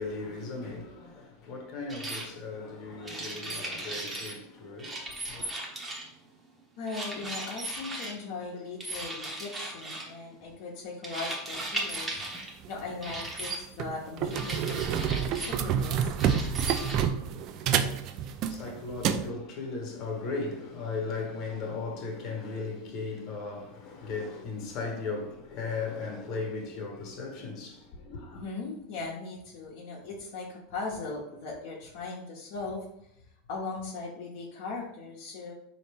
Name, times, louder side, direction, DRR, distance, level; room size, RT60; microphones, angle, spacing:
voice 1, 0.0-5.5 17.2-18.0 18.3-28.4, left 3 dB, 45° left, 1.2 m, -37 dB
sound 1, 1.9-2.3 3.0-4.4 4.8-6.2 6.9-8.1 8.8-10.1 11.0-12.5 13.0-13.6 14.3-15.6 16.2-17.0, right 1 dB, 15° right, 0.8 m, -37 dB
voice 2, 6.8-12.2 12.7-16.4 28.3-32.9 33.5-35.5, left 3 dB, 65° left, 0.9 m, -39 dB
sound 2, 12.6-12.8 13.4-13.5 13.8-19.3, right 8 dB, 45° right, 0.3 m, -28 dB
4.1 x 2.8 x 3.4 m
supercardioid pair, 135°, 0 cm